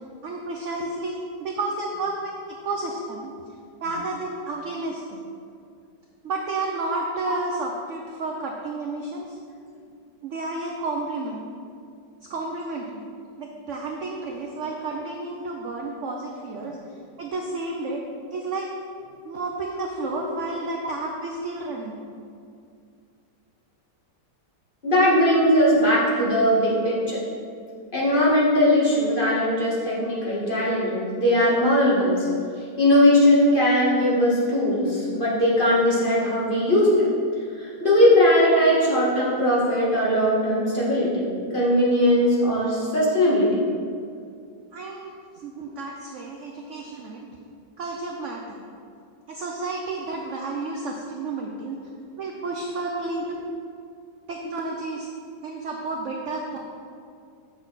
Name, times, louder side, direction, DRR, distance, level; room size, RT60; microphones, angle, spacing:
voice 1, 0.2-2.3 2.6-3.3 3.8-5.3 6.2-9.4 10.2-11.5 12.3-13.1 13.4-18.0 18.3-18.7 19.2-22.0 44.7-45.1 45.4-47.3 47.8-48.6 49.3-51.8 52.2-53.3 54.3-55.1 55.4-56.6, right 2 dB, 65° right, 1 dB, 0.7 m, -31 dB
voice 2, 24.8-27.2 27.9-32.3 32.8-37.1 37.5-43.5, left 1 dB, 30° left, -7 dB, 1.7 m, -20 dB
7.5 x 6.3 x 4.0 m, 2.3 s
omnidirectional pair, 1.9 m